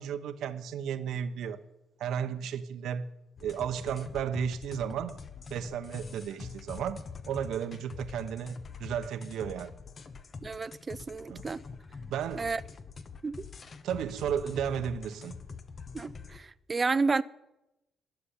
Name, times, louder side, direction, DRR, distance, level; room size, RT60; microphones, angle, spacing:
voice 1, 0.0-1.6 2.0-3.1 3.4-5.2 5.5-9.7 11.3-11.4 12.1-12.5 13.8-15.4, right 8 dB, 80° right, 0.9 m, -34 dB
sound 1, 3.4-16.4, left 5 dB, 45° left, 1.1 m, -45 dB
voice 2, 10.4-11.6 12.3-12.6 13.2-13.4 15.9-17.2, right 4 dB, 30° right, 0.5 m, -31 dB
13.0 x 7.1 x 10.0 m
cardioid pair, 90°, 0 cm